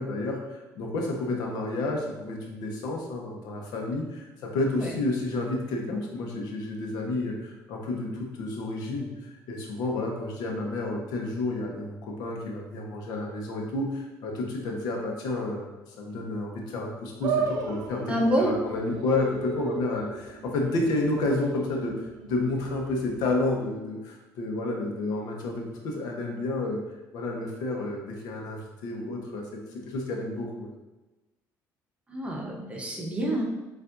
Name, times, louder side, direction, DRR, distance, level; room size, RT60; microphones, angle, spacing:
voice 1, 0.0-26.8 27.1-29.4 29.7-30.7, left 2 dB, 80° left, 0 dB, 0.8 m, -30 dB
sound 1, 17.2-23.7, right 5 dB, 80° right, 0.5 m, -35 dB
voice 2, 18.1-18.5 32.1-33.4, right 1 dB, 20° right, -1 dB, 0.9 m, -27 dB
6.7 x 2.6 x 2.6 m, 1.1 s
cardioid pair, 120°, 7 cm